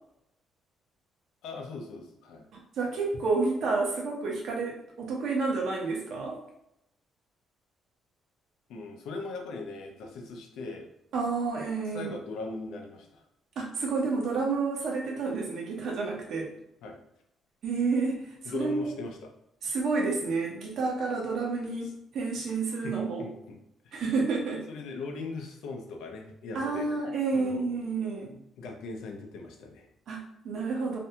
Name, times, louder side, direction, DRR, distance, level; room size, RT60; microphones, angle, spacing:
voice 1, 1.4-2.5 8.7-10.9 11.9-13.2 16.8-17.0 18.4-19.3 21.8-21.9 22.8-23.6 23.8-24.0 24.7-26.9 27.3-27.6 28.2-29.9, left 3 dB, 85° left, 3 dB, 0.5 m, -40 dB
voice 2, 2.5-6.4 11.1-12.1 13.6-16.5 17.6-18.9 19.6-23.3 23.9-24.6 26.5-28.3 30.1-31.0, right 4 dB, 55° right, -1 dB, 0.7 m, -30 dB
2.5 x 2.2 x 2.7 m, 0.79 s
cardioid pair, 160°, 0 cm